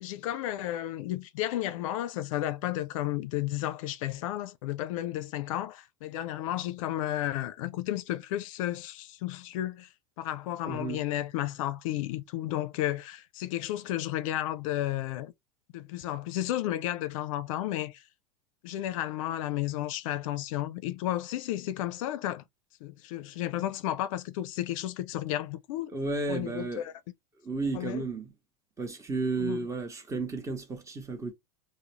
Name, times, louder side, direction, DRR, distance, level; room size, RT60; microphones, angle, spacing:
voice 1, 0.0-9.9 10.2-15.3 15.7-18.0 18.6-22.4 22.8-25.9 26.3-26.9 27.7-28.1 29.4-29.6, left 14 dB, 70° left, 0.4 m, -33 dB
voice 2, 10.7-11.0 25.9-26.8 27.4-28.3 28.8-31.3, right 3 dB, 15° right, 0.7 m, -33 dB
2.4 x 2.0 x 2.9 m
hypercardioid pair, 110°, 18 cm